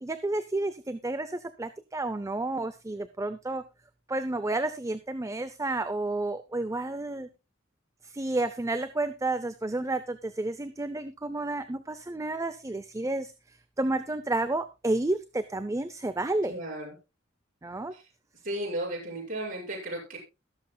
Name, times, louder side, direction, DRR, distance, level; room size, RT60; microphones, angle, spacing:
voice 1, 0.0-3.6 4.1-7.3 8.0-13.3 13.8-16.6 17.6-17.9, right 2 dB, 15° right, 11 dB, 0.5 m, -31 dB
voice 2, 16.5-16.9 17.9-18.0 18.4-20.2, right 1 dB, 45° right, -4 dB, 6.0 m, -34 dB
22.0 x 7.6 x 2.3 m, 0.27 s
head